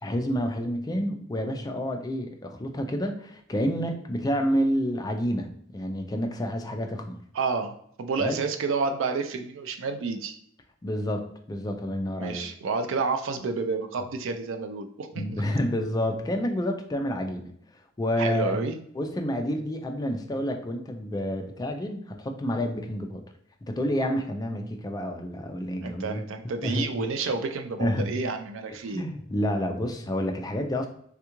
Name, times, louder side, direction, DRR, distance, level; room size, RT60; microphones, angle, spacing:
voice 1, 0.0-7.2 8.2-8.4 10.8-12.4 15.1-17.5 18.0-18.5 18.9-23.2 23.6-26.3 26.6-26.9 27.8-28.1 28.8-30.9, equal, 20° left, 4 dB, 0.3 m, -29 dB
voice 2, 7.3-10.4 12.2-15.2 18.2-18.8 25.8-29.0, right 4 dB, 65° right, 6 dB, 0.4 m, -30 dB
3.5 x 2.3 x 2.9 m, 0.66 s
head